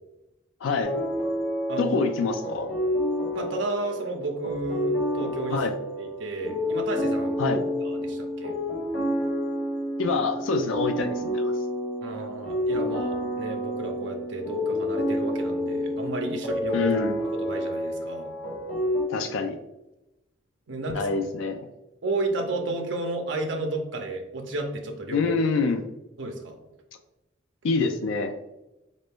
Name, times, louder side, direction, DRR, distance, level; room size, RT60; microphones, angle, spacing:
voice 1, 0.6-0.9 1.8-2.7 5.5-5.7 7.4-7.6 10.0-11.5 16.7-17.2 19.1-19.6 20.9-21.7 25.1-25.9 27.6-28.4, left 4 dB, 90° left, 7 dB, 0.4 m, -26 dB
sound 1, 0.8-19.0, equal, 55° left, 0.9 m, -29 dB
voice 2, 3.3-5.6 6.0-8.5 12.0-16.9 17.3-18.3 20.7-21.2 22.0-25.3 26.2-26.6, right 2 dB, 70° right, 2 dB, 0.6 m, -32 dB
4.2 x 2.6 x 3.4 m, 0.92 s
head